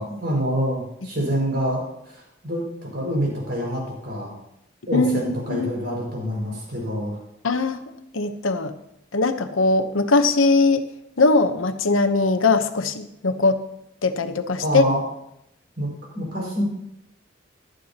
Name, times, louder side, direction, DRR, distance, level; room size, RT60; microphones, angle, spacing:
voice 1, 0.0-4.3 4.9-7.2 14.6-15.0 15.8-15.9 16.1-16.6, equal, 55° right, -3 dB, 5.4 m, -26 dB
voice 2, 4.9-5.7 7.4-7.8 8.1-8.7 9.1-10.8 11.2-13.6 14.0-14.8, left 3 dB, 90° left, 8 dB, 0.9 m, -20 dB
15.5 x 11.5 x 2.9 m, 0.80 s
head